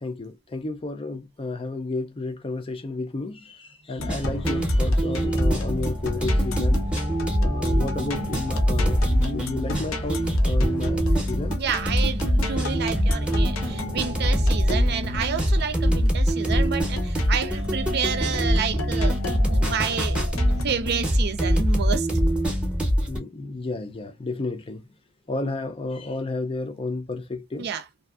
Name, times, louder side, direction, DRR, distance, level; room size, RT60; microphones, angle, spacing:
voice 1, 0.0-6.8 7.4-11.6 17.0-17.7 18.3-18.4 23.1-24.8 25.3-27.7, left 2 dB, 25° left, 0.4 m, -32 dB
sound 1, 3.9-20.6, left 2 dB, 85° left, 0.7 m, -35 dB
sound 2, 4.0-23.2, equal, 5° right, 0.8 m, -23 dB
voice 2, 11.5-20.2 20.6-22.1 27.6-27.8, right 6 dB, 50° right, 0.4 m, -29 dB
2.5 x 2.4 x 2.3 m
head